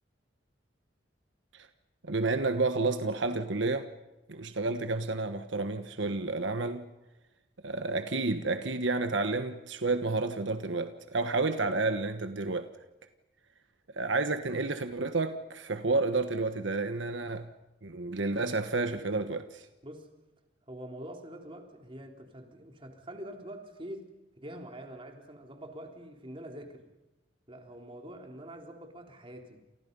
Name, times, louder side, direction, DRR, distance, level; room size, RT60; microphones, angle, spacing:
voice 1, 2.0-3.9 4.3-6.9 7.6-12.7 13.9-17.5 17.8-19.6, right 3 dB, 80° right, 1.3 m, -30 dB
voice 2, 20.7-24.1 24.4-26.9 27.5-29.6, right 1 dB, 30° right, 3.7 m, -45 dB
30.0 x 28.5 x 5.5 m
head